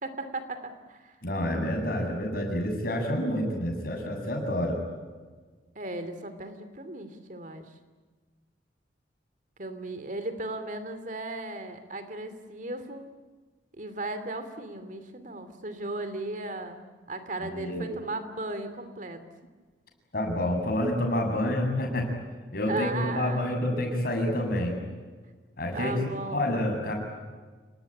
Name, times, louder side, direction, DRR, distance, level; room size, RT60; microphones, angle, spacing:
voice 1, 0.0-1.2 5.7-7.7 9.6-13.0 13.7-16.8 17.1-19.2 22.6-23.5 25.7-26.5, right 2 dB, 45° right, 10 dB, 2.7 m, -36 dB
voice 2, 1.2-4.8 17.5-17.9 20.1-22.1 22.5-24.7 25.6-25.9 26.3-26.9, left 1 dB, 55° left, 3 dB, 7.7 m, -28 dB
29.5 x 19.5 x 10.0 m, 1.4 s
head